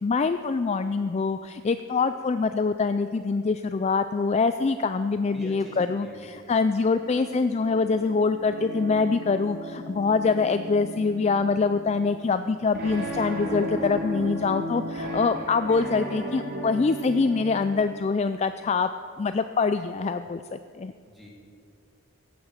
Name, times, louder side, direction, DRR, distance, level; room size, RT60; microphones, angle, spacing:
voice 1, 0.0-18.9 19.2-20.9, left 4 dB, 30° left, 10 dB, 0.3 m, -25 dB
voice 2, 5.3-6.5 21.1-21.3, equal, ahead, -4 dB, 2.8 m, -45 dB
sound 1, 6.9-17.6, equal, 45° right, 2.6 m, -35 dB
16.0 x 8.5 x 7.3 m, 2.3 s
head